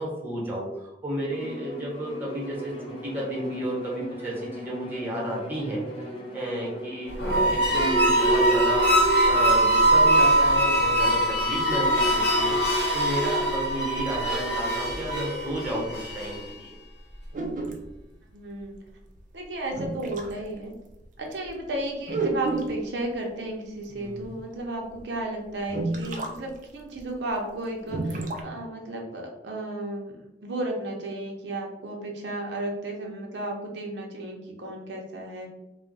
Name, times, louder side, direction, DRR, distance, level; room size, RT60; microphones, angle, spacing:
voice 1, 0.0-2.7 3.0-5.8 6.3-7.1 7.5-16.8 24.0-24.3, right 1 dB, 10° right, -4 dB, 0.7 m, -32 dB
Bowed string instrument, 1.3-8.7, equal, 30° left, 0.4 m, -39 dB
sound 1, 7.1-16.5, right 1 dB, 75° left, 0.9 m, -22 dB
sound 2, 17.3-17.9 19.2-19.3 19.7-20.3 20.9-21.0 21.3-21.5 22.1-22.9 24.2-24.3 25.0-25.1 25.7-26.4 26.6-26.7 27.0-27.1 27.8-28.4, right 3 dB, 45° right, 0.3 m, -30 dB
voice 2, 18.3-18.8 19.3-20.8 21.2-35.5, right 1 dB, 85° right, 0 dB, 0.6 m, -33 dB
2.3 x 2.1 x 3.8 m, 0.92 s
head